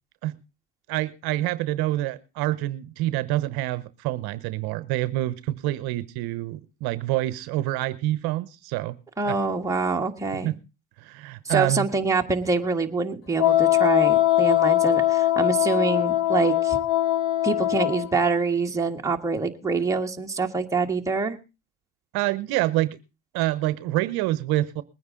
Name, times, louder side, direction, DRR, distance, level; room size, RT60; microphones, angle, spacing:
voice 1, 0.9-9.0 9.2-9.3 10.4-10.5 11.0-11.9 22.1-23.0 23.3-24.8, right 16 dB, 55° right, 15 dB, 0.9 m, -27 dB
voice 2, 9.2-10.5 11.4-16.8 17.4-21.4, right 4 dB, 5° right, 1 dB, 1.5 m, -25 dB
Wind instrument woodwind instrument, 13.4-18.1, left 14 dB, 70° left, 1.3 m, -21 dB
21.0 x 9.5 x 3.7 m, 0.30 s
supercardioid pair, 115°, 44 cm